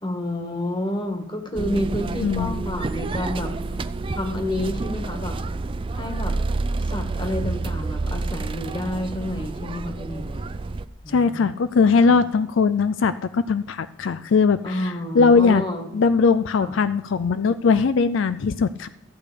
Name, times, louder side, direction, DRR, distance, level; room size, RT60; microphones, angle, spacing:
voice 1, 0.0-3.5 4.1-5.3 5.9-6.3 6.9-10.4 11.0-11.5 12.1-12.2 14.6-15.9 16.6-16.7, left 1 dB, 25° left, 5 dB, 1.6 m, -29 dB
sound 1, 1.6-10.9, right 3 dB, 25° right, 0.3 m, -29 dB
voice 2, 2.2-2.5 11.1-15.6 15.9-18.9, left 5 dB, 75° left, 14 dB, 0.4 m, -20 dB
14.5 x 8.3 x 5.0 m, 0.86 s
head